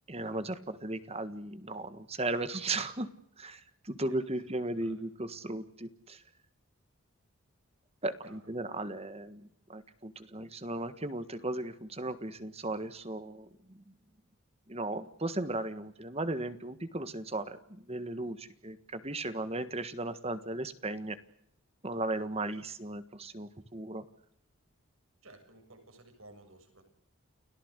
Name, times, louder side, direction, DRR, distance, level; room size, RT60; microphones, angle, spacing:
voice 1, 0.1-3.1 3.4-6.2 8.0-13.9 14.7-21.2 21.8-24.0, right 2 dB, 30° right, 11 dB, 1.5 m, -36 dB
voice 2, 4.4-5.0 8.2-8.5 25.2-26.8, right 2 dB, 70° right, 6 dB, 7.2 m, -56 dB
30.0 x 18.0 x 8.2 m, 0.72 s
head